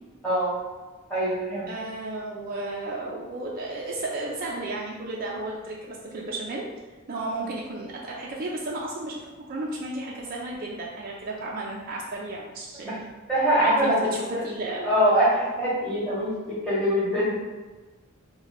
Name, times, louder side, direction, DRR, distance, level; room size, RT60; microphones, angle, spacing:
voice 1, 1.1-1.7 12.8-12.9 13.3-14.4 14.8-16.3 16.6-17.3, equal, 5° left, -10 dB, 1.5 m, -23 dB
voice 2, 1.7-6.6 7.1-9.2 9.5-12.9 13.6-14.9, right 2 dB, 45° right, -4 dB, 0.4 m, -33 dB
3.0 x 2.2 x 4.0 m, 1.3 s
head